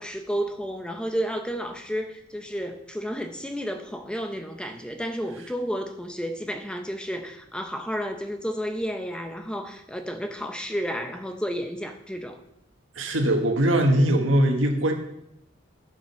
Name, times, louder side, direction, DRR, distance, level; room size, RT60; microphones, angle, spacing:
voice 1, 0.0-12.4, equal, 5° left, 5 dB, 0.8 m, -31 dB
voice 2, 12.9-14.9, right 1 dB, 85° right, 4 dB, 1.6 m, -21 dB
10.5 x 7.4 x 5.7 m, 0.80 s
head